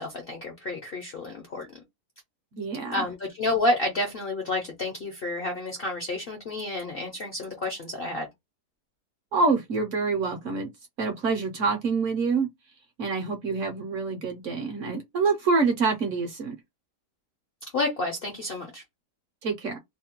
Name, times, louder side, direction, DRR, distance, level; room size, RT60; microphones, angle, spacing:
voice 1, 0.0-1.7 2.9-8.3 17.7-18.8, left 2 dB, 60° left, 0.6 m, -30 dB
voice 2, 2.5-3.1 9.3-10.7 11.0-12.5 13.0-16.5 19.4-19.8, right 4 dB, 60° right, 0.8 m, -26 dB
2.8 x 2.2 x 2.8 m
omnidirectional pair, 1.8 m